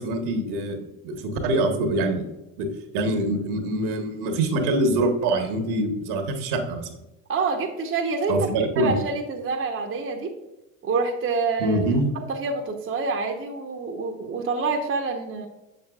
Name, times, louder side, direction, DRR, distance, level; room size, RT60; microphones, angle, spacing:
voice 1, 0.0-2.2 2.6-2.7 2.9-6.9 8.3-8.9 11.6-12.0, right 1 dB, 60° right, 4 dB, 1.4 m, -24 dB
voice 2, 7.3-8.4 8.8-10.3 10.8-11.8 12.3-15.5, right 4 dB, 30° right, 2 dB, 1.0 m, -27 dB
7.3 x 6.6 x 2.4 m, 0.96 s
hypercardioid pair, 65°, 44 cm